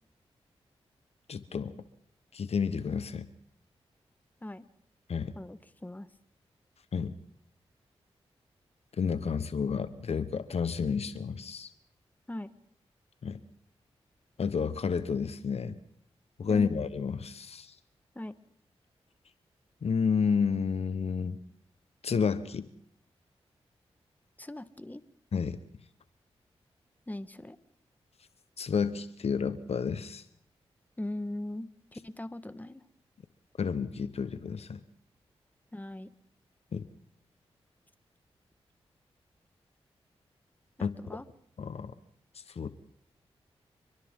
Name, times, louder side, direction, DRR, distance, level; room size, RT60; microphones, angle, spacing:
voice 1, 1.3-1.7 2.3-3.3 5.1-5.3 6.9-7.2 9.0-11.7 13.2-13.4 14.4-15.8 16.4-17.7 19.8-21.4 22.0-22.7 25.3-25.6 28.6-30.2 33.6-34.8 36.7-36.9 40.8-41.0 41.6-41.9 42.5-42.7, left 6 dB, 65° left, 13 dB, 1.1 m, -30 dB
voice 2, 5.3-6.1 12.3-12.5 16.5-16.7 18.1-18.3 24.4-25.0 27.1-27.6 31.0-32.8 35.7-36.1 40.8-41.2, left 1 dB, 15° left, 13 dB, 1.4 m, -40 dB
29.5 x 23.5 x 3.8 m, 0.67 s
supercardioid pair, 40°, 11 cm